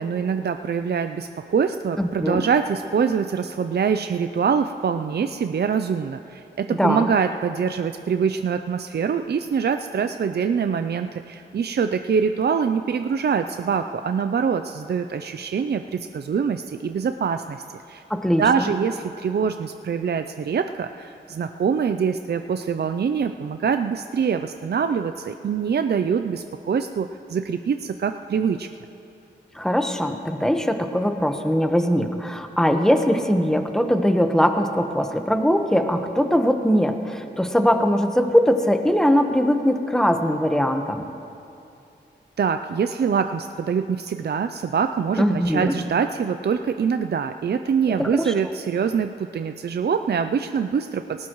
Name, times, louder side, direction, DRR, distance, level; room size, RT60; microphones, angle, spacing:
voice 1, 0.0-17.6 17.9-18.0 18.4-28.7 42.4-51.3, right 6 dB, 60° right, 8 dB, 0.5 m, -24 dB
voice 2, 2.0-2.4 6.8-7.1 18.1-18.7 29.5-41.0 45.2-45.7 48.0-48.3, equal, 5° left, 5 dB, 1.2 m, -21 dB
19.5 x 18.5 x 3.1 m, 2.7 s
cardioid pair, 65°, 19 cm